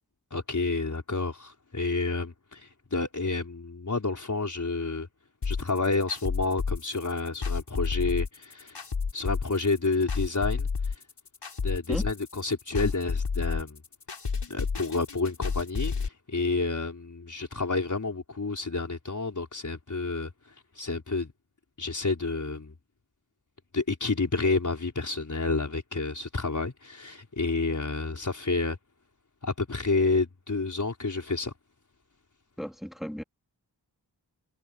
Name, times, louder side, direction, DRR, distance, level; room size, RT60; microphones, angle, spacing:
voice 1, 0.3-5.1 5.4-8.8 9.1-10.9 11.6-13.8 14.5-20.3 20.7-21.3 21.8-22.7 23.7-28.8 29.4-31.5, left 3 dB, 45° left, 5.0 m, -29 dB
sound 1, 5.4-16.1, left 5 dB, 80° left, 6.9 m, -31 dB
voice 2, 32.6-33.2, equal, ahead, 3.4 m, -34 dB
wide cardioid pair, 95°, 41 cm